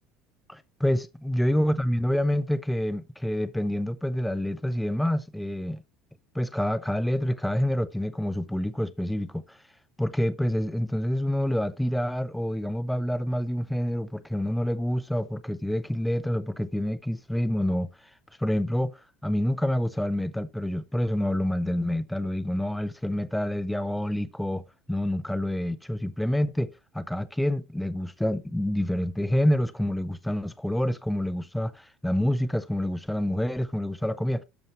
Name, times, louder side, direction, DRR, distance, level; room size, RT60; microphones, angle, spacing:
voice 1, 0.5-5.8 6.3-9.6 10.0-17.9 18.4-34.4, left 1 dB, ahead, 0.5 m, -27 dB
13.0 x 5.4 x 3.1 m
cardioid pair, 160°, 0 cm